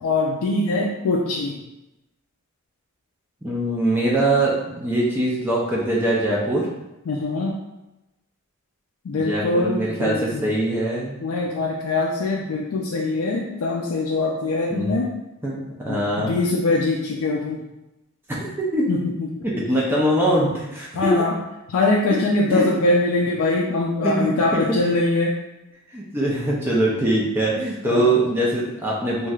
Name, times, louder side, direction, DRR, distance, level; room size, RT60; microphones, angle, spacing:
voice 1, 0.0-1.5 7.1-7.6 9.0-10.4 11.2-15.1 15.9-17.6 18.9-19.3 20.9-21.3 21.7-25.3 27.8-28.1, left 2 dB, 80° left, -2 dB, 0.4 m, -22 dB
voice 2, 3.4-6.7 9.1-11.2 14.7-15.0 15.4-16.4 18.3-18.9 19.4-21.1 22.5-22.7 24.0-24.6 25.9-29.3, right 1 dB, 10° right, -5 dB, 0.4 m, -22 dB
3.1 x 2.6 x 2.3 m, 0.96 s
head